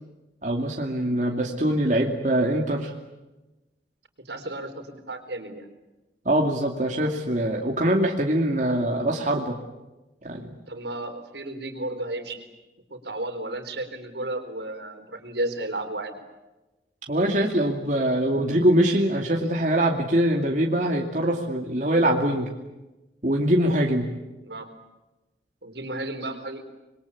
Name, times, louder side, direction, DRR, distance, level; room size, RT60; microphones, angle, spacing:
voice 1, 0.4-2.9 6.2-9.5 10.2-10.5 17.1-22.5 23.2-24.1, right 1 dB, 45° right, 0 dB, 2.6 m, -23 dB
voice 2, 4.2-5.7 10.7-12.4 12.9-16.2 24.4-24.7 25.6-26.6, right 2 dB, 75° right, 6 dB, 4.2 m, -33 dB
26.5 x 22.5 x 8.6 m, 1.1 s
head